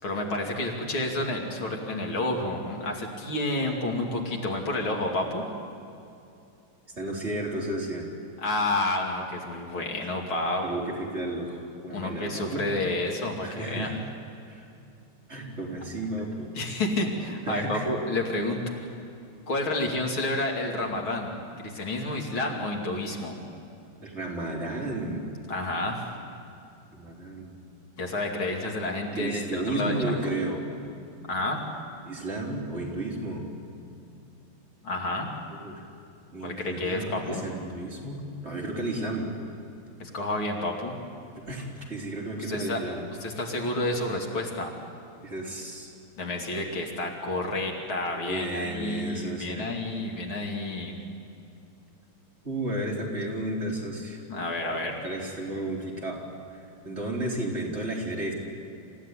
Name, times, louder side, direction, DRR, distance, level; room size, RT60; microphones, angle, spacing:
voice 1, 0.0-5.4 8.4-10.8 11.9-13.9 15.4-15.5 16.5-18.8 19.5-23.4 25.5-26.0 28.0-29.9 31.3-31.6 34.8-35.3 36.4-37.4 40.0-41.0 42.4-42.8 43.2-44.7 46.2-51.0 54.3-55.0, left 2 dB, 70° left, 1 dB, 3.5 m, -30 dB
voice 2, 7.0-8.1 10.6-12.7 13.4-14.0 14.5-14.7 15.3-16.5 17.5-17.9 24.0-25.2 26.9-27.6 29.2-30.6 32.1-33.4 35.5-35.8 36.3-39.3 41.5-43.0 45.2-45.9 48.3-49.7 52.4-54.2 54.7-56.3 56.5-58.3, right 1 dB, 30° right, -3 dB, 4.3 m, -33 dB
27.5 x 15.5 x 9.9 m, 2.6 s
omnidirectional pair, 2.3 m